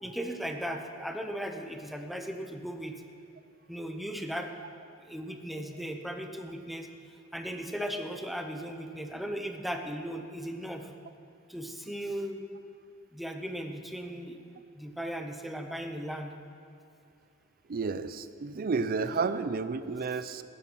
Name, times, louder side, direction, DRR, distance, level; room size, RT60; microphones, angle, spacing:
voice 1, 0.0-3.0 3.7-4.6 5.1-6.9 7.3-10.9 11.5-12.4 13.1-16.3, equal, ahead, 5 dB, 0.7 m, -37 dB
voice 2, 17.7-20.4, right 4 dB, 45° right, 13 dB, 0.4 m, -31 dB
11.0 x 8.8 x 6.0 m, 2.7 s
head